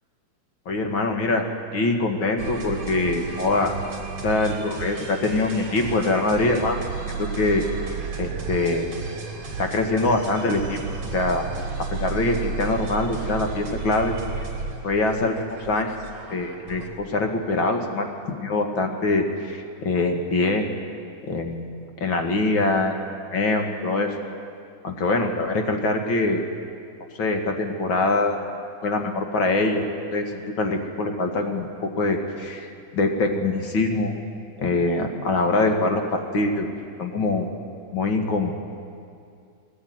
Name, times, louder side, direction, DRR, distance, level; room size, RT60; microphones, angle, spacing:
voice 1, 0.7-1.5 1.7-3.7 4.2-6.8 7.1-7.6 8.2-8.9 9.6-10.8 11.1-11.4 11.9-14.4 14.8-15.4 15.7-15.9 16.3-20.7 21.3-21.7 22.0-23.0 23.3-24.1 24.8-26.4 27.2-28.4 28.8-29.9 30.1-34.1 34.6-36.7 37.0-37.5 37.9-38.5, left 2 dB, 40° left, 3 dB, 1.8 m, -24 dB
sound 1, 2.4-16.9, right 5 dB, 40° right, 4.1 m, -33 dB
21.5 x 19.5 x 9.5 m, 2.4 s
omnidirectional pair, 4.5 m